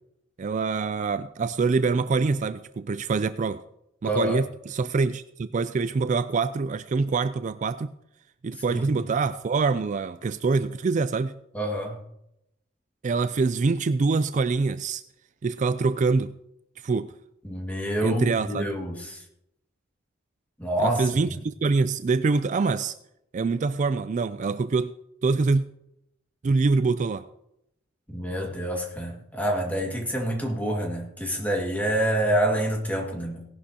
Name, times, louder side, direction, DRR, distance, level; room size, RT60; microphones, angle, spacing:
voice 1, 0.4-3.6 4.0-7.9 8.4-11.3 13.0-15.0 15.4-16.3 16.8-17.1 18.0-18.7 20.8-22.9 23.3-24.9 25.2-25.6 26.4-27.2, right 4 dB, 40° right, 13 dB, 0.3 m, -25 dB
voice 2, 4.0-4.4 8.7-9.1 11.5-12.0 17.4-19.2 20.6-21.0 21.3-21.4 28.1-33.5, right 1 dB, 10° left, 0 dB, 2.0 m, -27 dB
17.5 x 11.5 x 2.9 m, 0.81 s
head